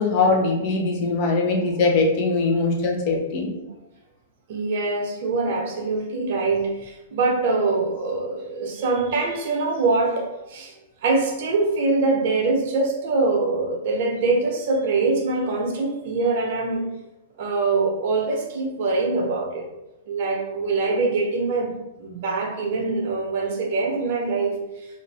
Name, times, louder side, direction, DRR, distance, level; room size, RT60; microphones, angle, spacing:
voice 1, 0.0-3.5, left 3 dB, 45° left, 0 dB, 0.7 m, -21 dB
voice 2, 4.5-10.7 11.0-16.8 17.4-19.7 20.1-21.7 22.0-24.9, right 3 dB, 55° right, 1 dB, 0.7 m, -24 dB
2.5 x 2.5 x 3.3 m, 0.98 s
figure-of-eight pair, 105°, 0 cm